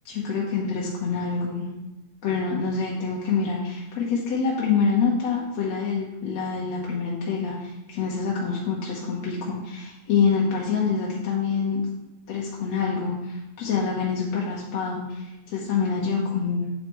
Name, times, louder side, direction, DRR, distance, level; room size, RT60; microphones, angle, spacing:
voice 1, 0.1-1.7 2.2-11.8 12.3-16.7, left 5 dB, 65° left, -4 dB, 2.3 m, -26 dB
9.3 x 8.0 x 3.1 m, 0.97 s
omnidirectional pair, 3.4 m